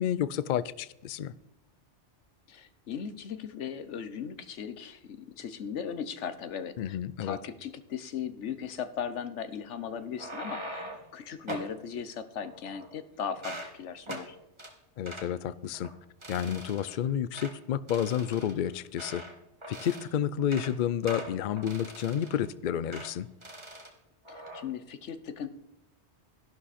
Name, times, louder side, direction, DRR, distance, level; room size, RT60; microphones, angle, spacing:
voice 1, 0.0-1.3 6.8-7.4 15.0-15.9 16.3-19.2 19.7-23.3, left 9 dB, 60° left, 17 dB, 0.5 m, -30 dB
voice 2, 2.5-14.4 24.3-25.5, left 7 dB, 85° left, 12 dB, 1.2 m, -38 dB
sound 1, 10.0-11.1 11.5-11.7 12.4-13.0 13.3-13.7 14.1-14.3 14.6-14.7 15.1-15.3 15.7-15.9 16.2-17.0 17.3-17.5 17.9-19.3 19.6-20.1 20.4-20.7 21.1-22.5 22.9-23.1 23.4-23.9 24.3-24.6, right 1 dB, 25° right, 1.7 m, -42 dB
12.5 x 11.5 x 4.2 m, 0.86 s
omnidirectional pair, 1.2 m